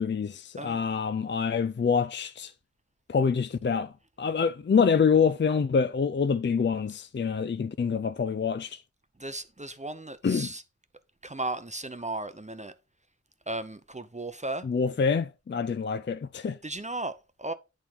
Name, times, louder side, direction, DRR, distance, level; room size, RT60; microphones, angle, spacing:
voice 1, 0.0-2.5 3.1-3.9 4.2-8.8 10.2-10.5 14.6-16.6, left 6 dB, 40° left, 0.4 m, -26 dB
voice 2, 9.2-10.6 11.2-12.7 13.5-14.7 16.6-17.5, right 2 dB, 25° right, 0.7 m, -35 dB
8.9 x 3.7 x 4.4 m
wide cardioid pair, 50°, 29 cm